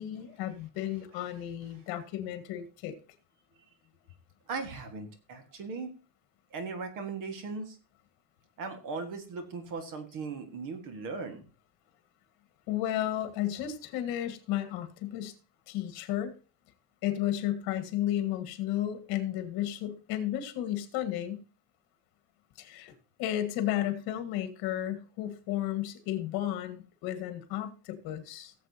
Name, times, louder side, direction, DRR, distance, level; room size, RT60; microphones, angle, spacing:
voice 1, 0.0-2.9 12.7-15.3 15.7-16.3 17.0-21.4 22.6-22.9 23.2-28.5, left 12 dB, 60° left, 8 dB, 1.7 m, -33 dB
voice 2, 4.5-5.9 6.5-7.8 8.6-11.4, right 4 dB, 45° right, 7 dB, 1.7 m, -38 dB
18.0 x 7.5 x 2.8 m, 0.34 s
cardioid pair, 175°, 43 cm